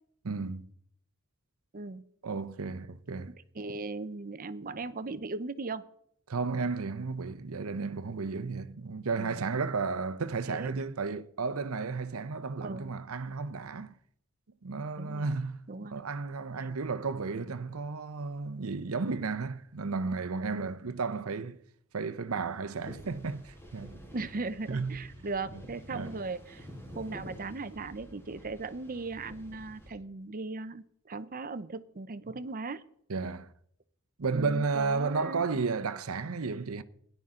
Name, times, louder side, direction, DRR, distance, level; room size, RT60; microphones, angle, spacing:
voice 1, 0.2-0.7 2.2-3.3 6.3-13.9 14.6-21.6 21.9-24.0 24.7-25.1 25.9-26.1 33.1-33.5 34.2-36.8, right 4 dB, 85° right, 0.7 m, -33 dB
voice 2, 3.3-5.8 9.2-9.4 10.5-10.7 12.6-12.9 15.0-15.3 15.7-15.9 20.5-20.8 24.1-26.7 26.9-32.8 34.3-35.5, right 3 dB, 40° right, 0.7 m, -38 dB
sound 1, 22.8-29.9, equal, 10° left, 4.1 m, -49 dB
17.0 x 11.0 x 3.8 m
head